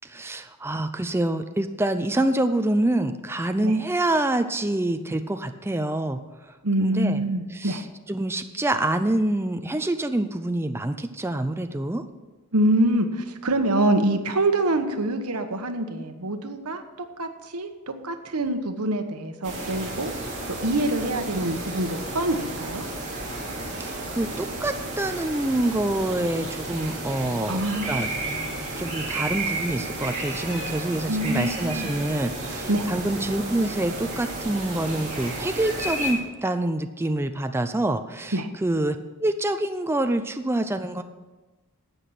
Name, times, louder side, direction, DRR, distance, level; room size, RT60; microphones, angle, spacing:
voice 1, 0.1-6.2 6.8-7.2 7.5-12.0 23.8-27.6 27.9-28.1 28.8-41.0, right 1 dB, 10° right, 8 dB, 0.4 m, -26 dB
voice 2, 6.6-7.8 12.5-16.8 17.2-17.7 18.0-20.1 20.6-22.8 27.5-28.0 31.1-31.9 32.7-32.8 38.3-38.5, right 1 dB, 85° right, 7 dB, 1.2 m, -25 dB
sound 1, 19.4-36.1, right 2 dB, 35° right, 3.4 m, -32 dB
12.0 x 8.3 x 5.9 m, 1.2 s
head